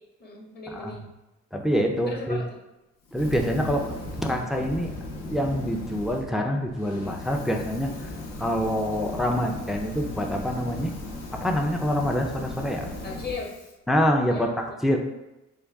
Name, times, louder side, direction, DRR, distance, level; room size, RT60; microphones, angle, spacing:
voice 1, 0.2-1.0 2.1-2.6 13.0-13.5 14.3-14.8, left 4 dB, 30° left, -1 dB, 0.9 m, -37 dB
voice 2, 1.5-2.4 3.1-4.9 5.3-8.1 8.4-10.9 11.4-12.9 13.9-15.0, equal, ahead, 2 dB, 0.3 m, -26 dB
Fire, 3.1-6.2 6.7-13.7, left 2 dB, 85° left, 0.8 m, -37 dB
3.6 x 2.3 x 3.4 m, 0.99 s
cardioid pair, 90°, 30 cm